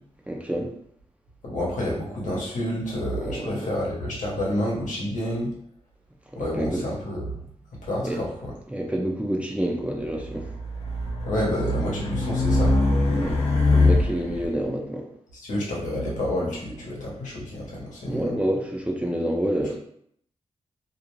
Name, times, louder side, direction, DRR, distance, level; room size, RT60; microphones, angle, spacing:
voice 1, 0.3-0.7 3.2-3.6 6.4-6.8 8.0-8.2 8.7-10.5 13.2-13.4 13.7-15.0 18.1-19.7, right 1 dB, 10° right, 1 dB, 0.6 m, -27 dB
voice 2, 1.4-5.5 6.4-7.4 7.8-8.5 11.2-12.9 15.3-18.4, left 1 dB, 85° left, -4 dB, 0.9 m, -29 dB
Race car auto racing, 10.1-14.5, left 2 dB, 55° left, 1.0 m, -23 dB
2.5 x 2.0 x 3.0 m, 0.67 s
cardioid pair, 45°, 12 cm